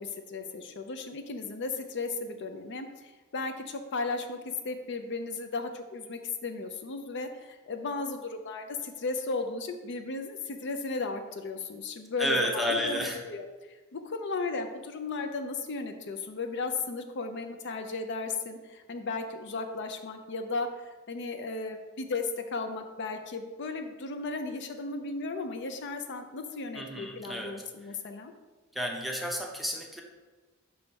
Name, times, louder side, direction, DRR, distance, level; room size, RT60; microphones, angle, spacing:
voice 1, 0.0-4.4 4.6-13.0 13.3-28.3, left 3 dB, 55° left, 6 dB, 0.5 m, -35 dB
voice 2, 12.2-13.2 26.7-27.6 28.7-30.0, equal, ahead, 0 dB, 0.7 m, -31 dB
6.2 x 3.2 x 5.3 m, 1.2 s
head